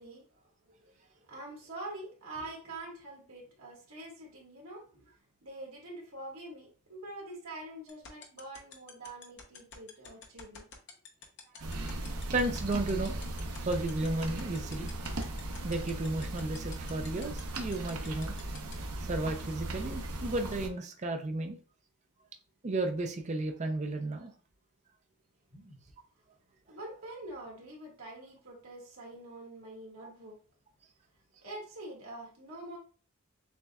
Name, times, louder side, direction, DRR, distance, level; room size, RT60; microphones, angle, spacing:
voice 1, 0.0-5.1 5.4-10.7 25.5-25.8 26.7-30.4 31.4-32.8, right 2 dB, 70° right, -2 dB, 1.7 m, -45 dB
sound 1, 7.9-18.7, left 7 dB, 50° left, 0.7 m, -47 dB
sound 2, 11.6-20.7, right 1 dB, 85° right, 0.8 m, -38 dB
voice 2, 12.3-13.2 13.6-14.9 15.6-18.3 19.0-21.6 22.6-24.3, right 2 dB, 30° right, 5 dB, 0.4 m, -33 dB
6.7 x 2.3 x 2.3 m, 0.38 s
head